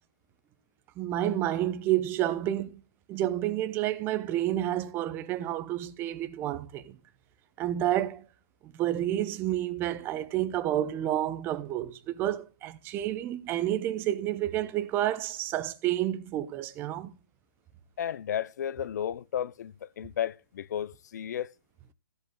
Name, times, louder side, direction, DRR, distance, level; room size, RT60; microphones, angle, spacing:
voice 1, 1.0-2.8 3.1-7.0 7.6-8.3 8.6-17.1, right 13 dB, 20° right, 0.8 m, -30 dB
voice 2, 18.0-21.5, left 9 dB, 60° left, 0.5 m, -33 dB
14.5 x 8.0 x 2.3 m
hypercardioid pair, 150°, 11 cm